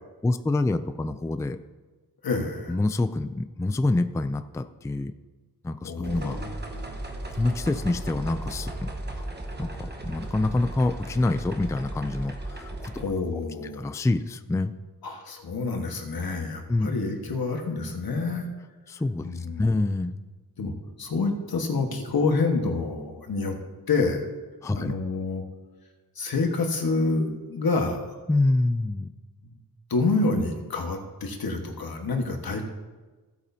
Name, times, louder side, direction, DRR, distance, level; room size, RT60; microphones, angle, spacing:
voice 1, 0.2-1.6 2.7-5.1 5.6-6.4 7.4-9.3 9.6-12.9 13.8-14.7 16.7-16.9 18.9-20.2 24.6-24.9 28.3-29.1, left 2 dB, 10° left, 10 dB, 0.3 m, -26 dB
voice 2, 2.2-2.8 5.8-7.3 13.0-13.9 15.0-18.5 19.2-19.7 20.6-20.7 21.0-23.6 23.9-24.3 24.7-25.4 26.1-28.1 29.4-29.6 29.9-32.6, left 3 dB, 85° left, 3 dB, 1.4 m, -28 dB
sound 1, 6.0-13.1, right 1 dB, 30° right, 1.1 m, -36 dB
16.0 x 8.3 x 2.8 m, 1.3 s
wide cardioid pair, 115°, 35 cm